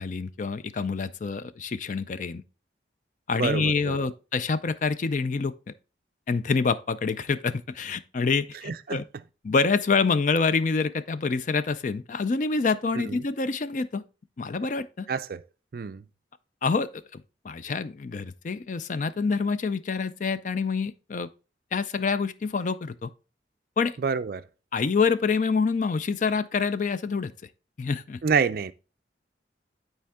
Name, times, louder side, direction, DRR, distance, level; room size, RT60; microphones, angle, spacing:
voice 1, 0.0-2.4 3.3-5.7 6.3-9.0 9.4-14.0 14.4-15.1 16.6-21.3 21.7-23.1 23.8-24.0 24.7-27.3 27.8-28.2, left 4 dB, 45° left, 0.4 m, -27 dB
voice 2, 3.3-4.1 8.6-9.0 13.1-13.2 15.1-15.4 15.7-16.0 24.0-24.4 28.2-28.7, right 5 dB, 50° right, 0.4 m, -27 dB
10.0 x 4.5 x 3.5 m
head